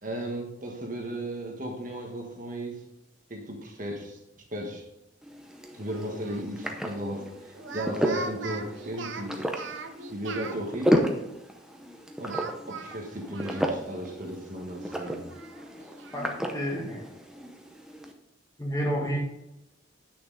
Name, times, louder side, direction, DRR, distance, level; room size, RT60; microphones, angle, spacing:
voice 1, 0.0-2.8 3.3-4.2 4.5-4.9 5.7-9.4 10.1-11.1 12.2-15.2, right 1 dB, 40° right, 1 dB, 1.4 m, -35 dB
sound 1, 5.2-18.1, equal, 5° right, 0.7 m, -33 dB
Speech, 5.9-6.5 7.5-10.6 12.3-14.0 14.3-14.4 14.9-16.3, right 4 dB, 70° right, 0.8 m, -40 dB
voice 2, 16.1-17.0 18.6-19.2, equal, 15° left, -1 dB, 1.6 m, -30 dB
8.6 x 6.7 x 4.0 m, 0.88 s
head